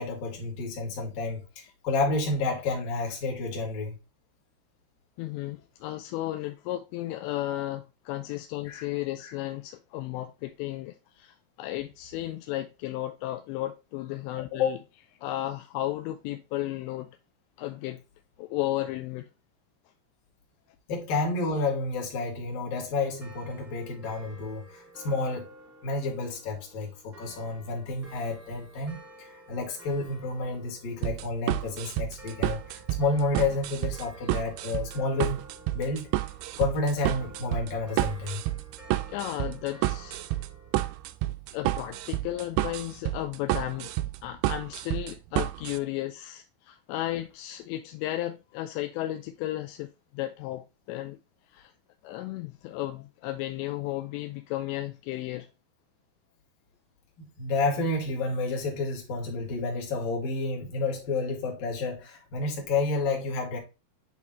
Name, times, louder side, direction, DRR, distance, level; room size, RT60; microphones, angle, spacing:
voice 1, 0.0-4.0 8.7-8.8 9.2-9.3 14.5-14.7 20.9-25.5 25.8-35.4 35.7-36.1 36.6-38.4 57.2-63.6, left 3 dB, 55° left, 3.5 m, -30 dB
voice 2, 5.2-14.8 15.2-17.1 17.6-18.0 18.4-19.3 39.1-40.2 41.5-43.9 44.2-51.2 51.5-51.7 52.0-55.5, left 15 dB, 85° left, 2.7 m, -34 dB
sound 1, 22.9-41.0, right 1 dB, 5° right, 1.1 m, -52 dB
sound 2, 31.0-45.8, right 15 dB, 85° right, 2.5 m, -30 dB
10.0 x 3.5 x 3.0 m
omnidirectional pair, 5.3 m